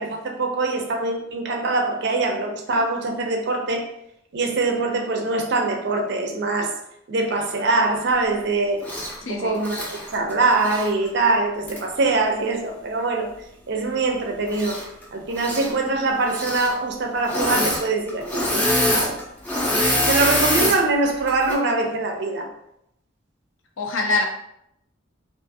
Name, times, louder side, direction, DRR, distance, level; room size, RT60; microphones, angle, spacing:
voice 1, 0.0-3.9 4.3-6.8 7.1-8.8 9.3-13.3 13.7-14.8 15.1-19.2 20.1-22.5, right 3 dB, 55° right, 3 dB, 0.5 m, -23 dB
Engine / Mechanisms, 8.8-9.1 9.6-10.9 11.7-11.8 14.5-15.0 15.3-15.7 16.3-16.7 17.2-17.8 18.1-20.8 21.3-21.6, left 1 dB, 10° left, 0.5 m, -24 dB
voice 2, 9.3-9.6 23.8-24.2, left 3 dB, 70° left, 2 dB, 0.5 m, -24 dB
2.5 x 2.4 x 2.6 m, 0.77 s
head